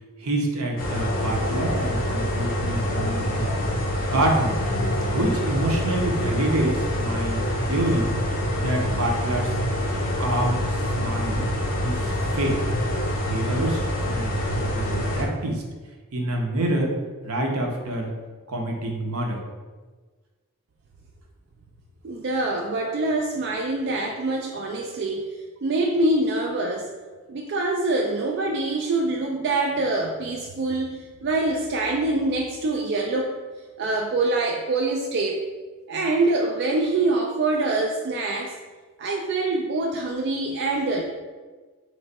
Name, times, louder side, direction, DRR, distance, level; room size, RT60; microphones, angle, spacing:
voice 1, 0.2-3.5 4.0-4.6 5.1-8.1 8.5-9.7 10.2-11.4 11.8-12.6 13.3-15.6 16.1-16.9 17.2-18.2 18.5-19.4, right 1 dB, 80° right, 1 dB, 0.8 m, -27 dB
sound 1, 0.8-15.2, equal, 40° left, 0.7 m, -26 dB
voice 2, 22.0-25.2 25.6-26.9 27.3-33.3 33.8-35.4 35.9-38.5 39.0-41.0, right 2 dB, 50° right, 1 dB, 0.3 m, -25 dB
3.3 x 3.2 x 4.0 m, 1.4 s
head